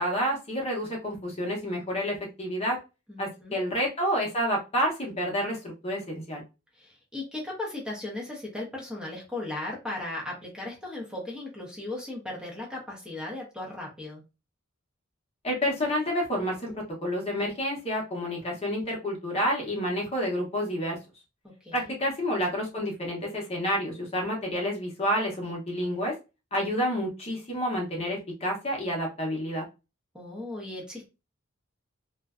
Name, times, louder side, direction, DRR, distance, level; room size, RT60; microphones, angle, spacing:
voice 1, 0.0-2.8 3.2-6.4 15.4-21.0 21.7-26.1 26.5-29.6, equal, 30° left, -1 dB, 0.8 m, -29 dB
voice 2, 3.1-3.6 6.8-14.2 21.6-21.9 30.1-31.1, left 2 dB, 5° right, -2 dB, 0.7 m, -37 dB
2.5 x 2.2 x 2.3 m, 0.28 s
head